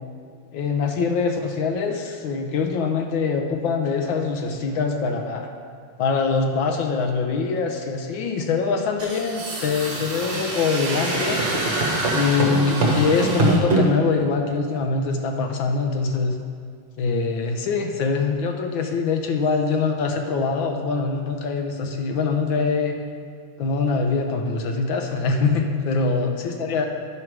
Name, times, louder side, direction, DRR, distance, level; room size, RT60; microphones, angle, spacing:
voice 1, 0.5-5.5 6.0-11.5 12.1-16.4 17.0-23.0 23.6-26.9, left 4 dB, 70° left, 4 dB, 1.4 m, -23 dB
sound 1, 9.0-13.8, right 2 dB, 50° right, 1.7 m, -24 dB
11.0 x 6.2 x 4.7 m, 2.3 s
omnidirectional pair, 2.4 m